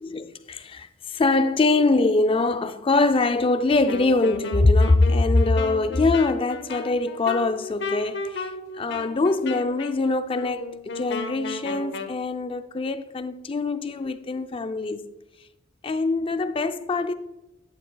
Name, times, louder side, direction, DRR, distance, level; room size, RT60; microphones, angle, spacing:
voice 1, 0.0-8.5 8.8-15.1 15.8-17.1, left 3 dB, 25° left, 0.4 m, -23 dB
Wind instrument woodwind instrument, 3.8-12.2, left 3 dB, 60° left, 0.7 m, -34 dB
11.0 x 7.1 x 2.3 m
head